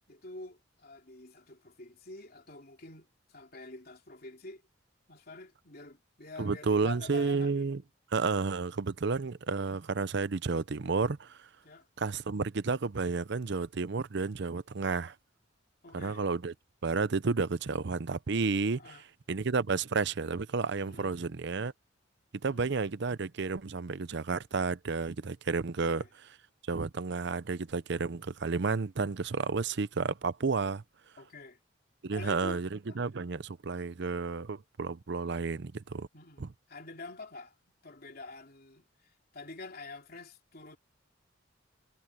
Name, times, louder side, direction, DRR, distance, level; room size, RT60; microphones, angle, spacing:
voice 1, 0.1-4.6 5.1-7.7 9.1-9.3 11.6-11.9 15.8-16.3 18.7-19.0 20.9-21.1 22.4-22.7 25.9-26.1 31.2-31.6 32.1-32.6 32.9-33.0 36.1-37.5 37.8-40.8, left 2 dB, 50° left, 3.3 m, -47 dB
voice 2, 6.4-7.8 8.1-11.5 12.0-15.1 15.9-16.5 16.8-18.8 19.3-21.7 22.4-26.4 26.7-30.8 32.0-36.1 36.4-36.5, right 4 dB, 60° right, 0.6 m, -31 dB
head